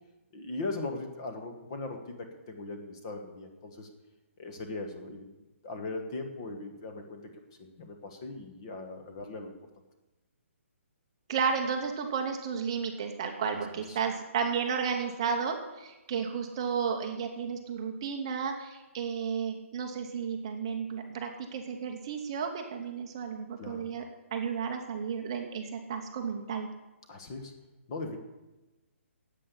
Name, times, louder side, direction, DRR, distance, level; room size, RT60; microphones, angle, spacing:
voice 1, 0.3-3.9 4.4-5.3 5.6-7.2 7.6-9.5 13.5-13.6 13.9-14.0 23.6-23.9 27.1-27.5 27.9-28.2, left 2 dB, 20° left, 5 dB, 1.2 m, -39 dB
voice 2, 11.3-24.0 24.3-26.7, right 6 dB, 20° right, 4 dB, 0.9 m, -33 dB
9.8 x 8.3 x 9.7 m, 1.1 s
hypercardioid pair, 180°, 8 cm